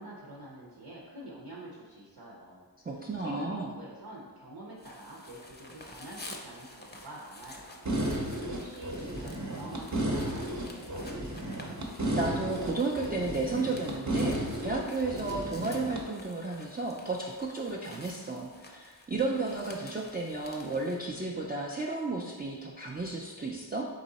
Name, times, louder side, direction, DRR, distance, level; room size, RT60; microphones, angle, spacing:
voice 1, 0.0-2.6 2.9-7.9 8.2-11.1, right 1 dB, 75° right, -4 dB, 0.8 m, -47 dB
voice 2, 2.8-3.7 12.1-23.9, right 3 dB, 25° right, -3 dB, 0.4 m, -33 dB
sound 1, 4.8-21.0, left 2 dB, 25° left, 0.5 m, -51 dB
sound 2, 7.8-16.0, right 1 dB, 40° right, 0.7 m, -33 dB
3.8 x 3.1 x 4.0 m, 1.4 s
wide cardioid pair, 55°, 43 cm